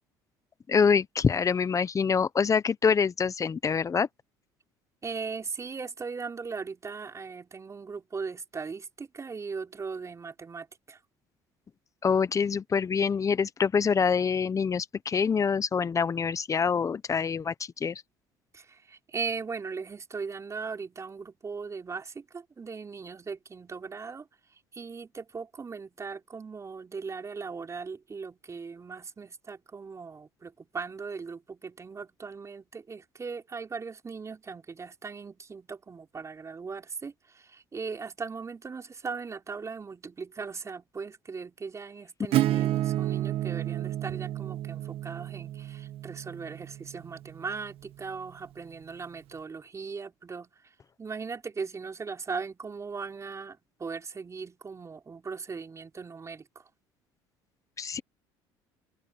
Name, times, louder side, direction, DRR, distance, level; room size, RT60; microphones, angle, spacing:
voice 1, 0.7-4.1 12.0-18.0 57.8-58.0, left 6 dB, 30° left, 1.2 m, -25 dB
voice 2, 5.0-11.0 18.5-50.5 51.0-56.6, right 5 dB, 30° right, 4.2 m, -39 dB
Acoustic guitar / Strum, 42.3-47.8, right 14 dB, 60° right, 1.6 m, -31 dB
supercardioid pair, 80°, 11 cm